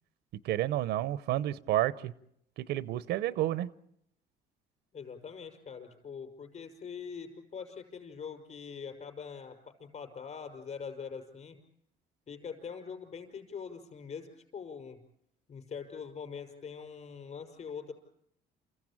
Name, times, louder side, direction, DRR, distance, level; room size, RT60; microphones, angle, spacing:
voice 1, 0.4-2.1 2.6-3.7, right 13 dB, 80° right, 18 dB, 0.8 m, -30 dB
voice 2, 4.9-9.5 9.8-11.6 12.3-15.0 15.5-17.9, left 6 dB, 45° left, 6 dB, 5.7 m, -43 dB
28.5 x 15.5 x 8.8 m, 0.75 s
cardioid pair, 110°, 17 cm